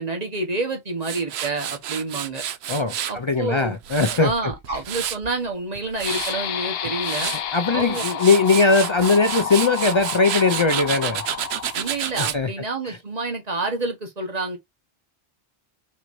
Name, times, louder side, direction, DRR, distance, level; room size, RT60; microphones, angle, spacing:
voice 1, 0.0-2.4 3.1-3.8 4.2-7.3 7.7-8.2 11.7-14.6, right 3 dB, 40° right, 1.4 m, -28 dB
Tools, 1.0-3.2 3.6-5.3 5.7-6.3 6.8-7.4 7.8-12.4, right 10 dB, 85° right, 0.9 m, -30 dB
voice 2, 2.7-4.3 7.5-11.2 12.2-12.5 12.9-13.0, left 4 dB, 45° left, 0.4 m, -20 dB
sound 1, 6.0-12.2, left 9 dB, 75° left, 0.8 m, -30 dB
6.0 x 3.1 x 2.7 m
omnidirectional pair, 1.0 m